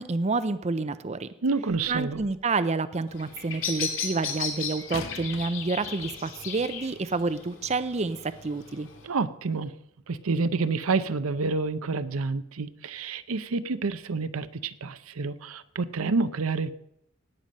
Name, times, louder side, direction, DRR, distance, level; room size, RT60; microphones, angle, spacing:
voice 1, 0.0-1.3 1.9-8.9, right 3 dB, 30° right, 12 dB, 0.5 m, -29 dB
voice 2, 1.4-2.2 9.0-9.7 10.1-16.7, right 4 dB, 90° right, 12 dB, 0.7 m, -28 dB
sound 1, 1.7-2.5 4.9-6.5 7.3-7.4, left 4 dB, 90° left, 1.2 m, -43 dB
Bird vocalization bird call bird song, 3.1-9.1, left 6 dB, 65° left, 2.6 m, -36 dB
17.5 x 9.1 x 5.3 m, 0.76 s
head